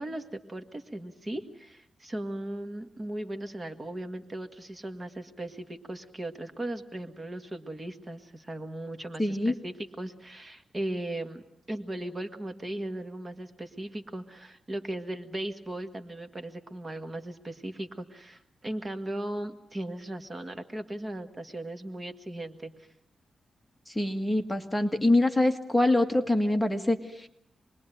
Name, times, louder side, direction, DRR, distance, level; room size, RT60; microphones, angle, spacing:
voice 1, 0.0-11.4 11.7-22.9, right 1 dB, 25° right, 7 dB, 1.9 m, -37 dB
voice 2, 9.2-9.5 23.9-27.3, left 1 dB, 10° left, 5 dB, 1.7 m, -25 dB
27.5 x 21.0 x 9.2 m, 0.76 s
wide cardioid pair, 110°, 0 cm